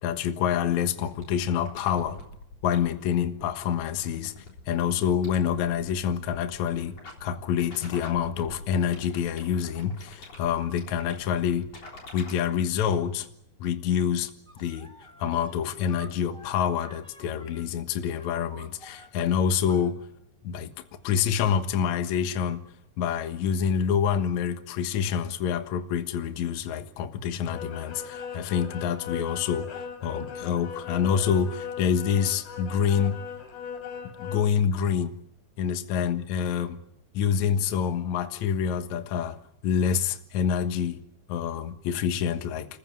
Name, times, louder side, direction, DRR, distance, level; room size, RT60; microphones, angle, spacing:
voice 1, 0.0-2.2 2.6-4.3 4.7-11.7 12.1-13.3 13.6-14.3 14.6-14.9 15.2-20.0 20.4-20.7 21.0-22.6 23.0-33.2 34.2-35.2 35.6-36.8 37.1-39.4 39.6-41.0 41.3-42.7, left 8 dB, 65° left, 8 dB, 1.8 m, -27 dB
sound 1, 1.1-12.3, left 2 dB, 35° left, 4.3 m, -46 dB
sound 2, 14.5-15.5 15.9-17.6 18.0-19.1 19.6-19.8, equal, ahead, 1.9 m, -49 dB
sound 3, 27.5-34.4, left 6 dB, 85° left, 5.2 m, -38 dB
29.5 x 15.0 x 9.2 m, 0.82 s
omnidirectional pair, 5.4 m